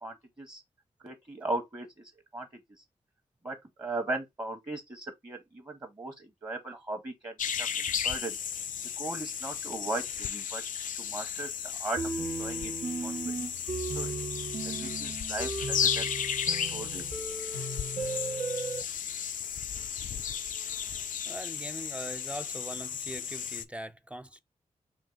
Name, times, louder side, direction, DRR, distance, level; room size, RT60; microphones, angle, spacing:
voice 1, 0.0-0.6 1.0-2.5 3.4-8.4 9.0-10.6 11.0-12.7 13.0-13.5 13.9-14.2 14.6-16.1 16.5-17.0, right 2 dB, 30° right, 1.1 m, -38 dB
sound 1, 7.4-23.6, left 8 dB, 70° left, 0.4 m, -34 dB
sound 2, 12.0-18.8, right 3 dB, 75° right, 1.2 m, -36 dB
voice 2, 20.8-24.4, right 1 dB, 10° right, 0.4 m, -42 dB
3.8 x 2.7 x 3.8 m
cardioid pair, 45°, 14 cm